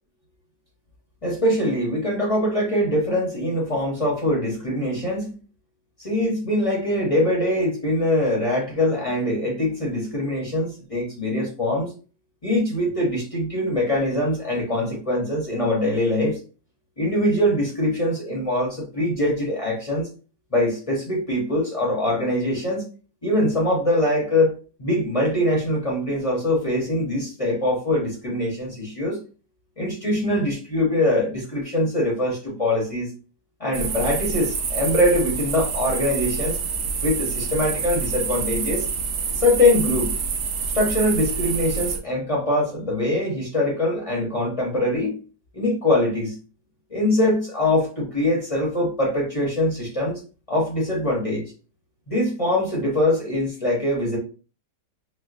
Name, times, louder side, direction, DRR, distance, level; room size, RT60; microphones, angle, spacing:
voice 1, 1.2-5.4 6.0-11.9 12.4-16.4 17.0-20.1 20.5-22.9 23.2-29.2 29.8-33.1 33.6-36.6 37.0-38.9 39.4-40.1 40.7-45.2 45.5-46.3 46.9-50.2 50.5-51.4 52.1-54.2, left 1 dB, 30° left, -3 dB, 0.7 m, -23 dB
sound 1, 33.7-42.0, right 5 dB, 85° right, 0.6 m, -27 dB
4.3 x 2.1 x 2.5 m, 0.36 s
omnidirectional pair, 1.8 m